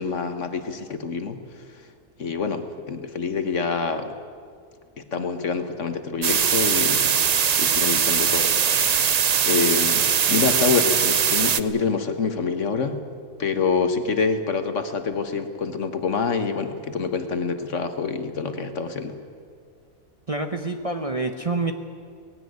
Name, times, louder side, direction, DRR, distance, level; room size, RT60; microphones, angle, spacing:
voice 1, 0.0-1.4 2.2-4.1 5.0-7.1 7.6-9.0 9.4-13.0 13.4-19.2, left 5 dB, 60° left, 8 dB, 1.6 m, -26 dB
sound 1, 6.2-11.6, right 7 dB, 70° right, 0.3 m, -21 dB
voice 2, 20.3-21.7, right 3 dB, 30° right, 5 dB, 0.9 m, -27 dB
18.5 x 17.0 x 9.4 m, 2.1 s
omnidirectional pair, 1.5 m